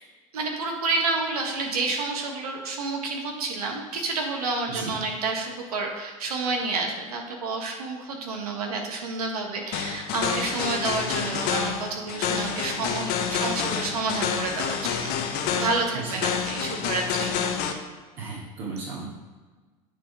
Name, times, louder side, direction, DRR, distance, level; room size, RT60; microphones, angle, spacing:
voice 1, 0.3-15.1 15.5-17.4, right 3 dB, 85° right, 1 dB, 1.6 m, -29 dB
voice 2, 4.7-5.1 15.9-16.2 18.2-19.1, right 3 dB, 60° right, -7 dB, 2.6 m, -35 dB
sound 1, 9.7-17.7, left 7 dB, 55° left, 0.9 m, -28 dB
9.2 x 4.2 x 4.9 m, 1.3 s
hypercardioid pair, 85°, 19 cm